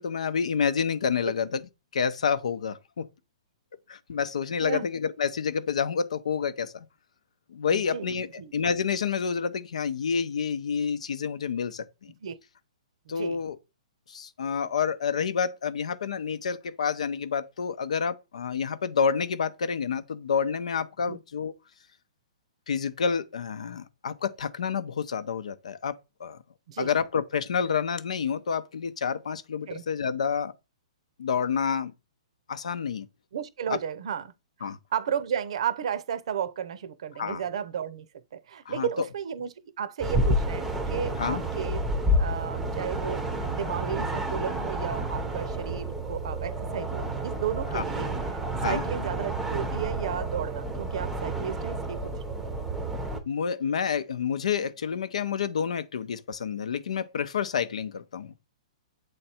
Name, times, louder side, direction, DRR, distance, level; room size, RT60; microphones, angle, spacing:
voice 1, 0.0-1.6 1.9-3.1 3.9-6.9 7.5-12.1 13.1-13.6 14.1-21.5 22.7-25.9 26.2-26.4 26.8-30.5 31.2-31.9 32.5-33.1 34.6-34.8 37.2-37.4 38.7-38.9 41.2-41.4 47.7-47.8 48.6-48.8 53.3-58.4, left 6 dB, 80° left, 0.7 m, -29 dB
voice 2, 7.7-8.1 8.4-8.5 12.2-12.4 13.1-13.4 21.1-21.2 26.7-26.9 29.7-29.8 33.3-34.3 34.6-41.8 42.2-43.2 43.5-52.4, right 8 dB, 60° right, 0.7 m, -33 dB
sound 1, 40.0-53.2, right 1 dB, 5° right, 0.7 m, -30 dB
7.9 x 3.3 x 4.3 m
hypercardioid pair, 155°, 4 cm